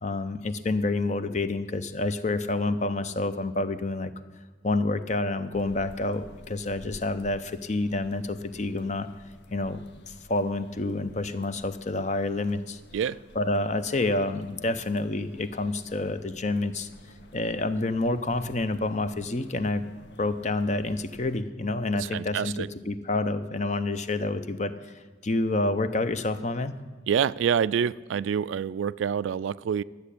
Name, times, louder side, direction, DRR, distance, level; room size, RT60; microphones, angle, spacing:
voice 1, 0.0-4.1 4.6-9.1 9.5-12.8 13.4-16.9 17.3-19.8 20.2-24.9 25.2-26.7, left 2 dB, 40° left, 11 dB, 0.6 m, -28 dB
sound 1, 5.5-21.4, left 1 dB, 65° left, 1.0 m, -52 dB
voice 2, 22.0-22.7 27.1-29.8, right 7 dB, 85° right, 18 dB, 0.3 m, -27 dB
12.0 x 8.2 x 8.4 m, 1.3 s
head